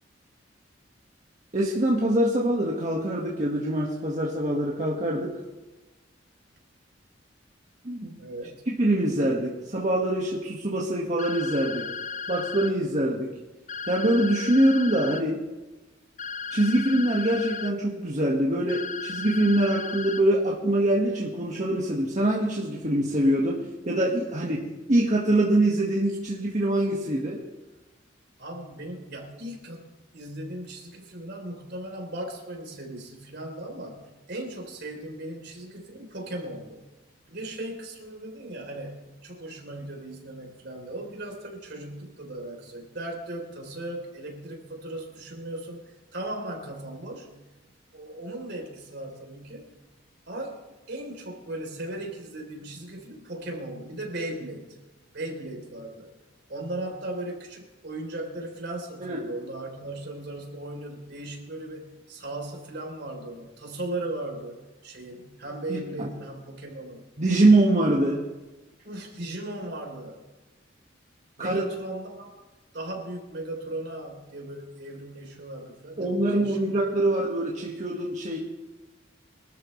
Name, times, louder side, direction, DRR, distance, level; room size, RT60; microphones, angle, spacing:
voice 1, 1.5-5.4 7.8-8.1 8.7-11.9 12.3-13.3 13.9-15.4 16.5-27.4 59.0-59.2 65.7-65.8 67.2-68.2 71.4-71.6 76.0-78.4, right 1 dB, 40° right, -3 dB, 1.7 m, -24 dB
voice 2, 8.2-8.6 28.4-36.9 37.3-47.3 47.9-49.8 50.3-50.6 50.9-54.8 55.1-56.1 56.5-67.1 68.8-70.2 71.4-72.3 72.7-76.6, right 1 dB, 60° right, 1 dB, 3.7 m, -37 dB
sound 1, 11.2-12.7 13.7-15.2 16.2-17.7 18.7-20.2, left 5 dB, 40° left, 0.6 m, -35 dB
24.0 x 13.0 x 3.3 m, 1.1 s
head